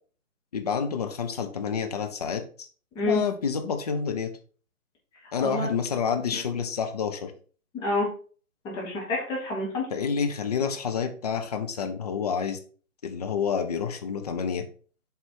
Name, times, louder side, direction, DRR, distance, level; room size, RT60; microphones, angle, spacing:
voice 1, 0.5-2.7 3.1-4.3 5.3-7.3 9.9-12.6 13.0-14.7, left 6 dB, 30° left, 6 dB, 0.7 m, -28 dB
voice 2, 7.7-8.1 8.6-9.9, left 2 dB, 10° left, -4 dB, 1.4 m, -28 dB
7.0 x 4.3 x 4.4 m, 0.41 s
figure-of-eight pair, 145°, 43 cm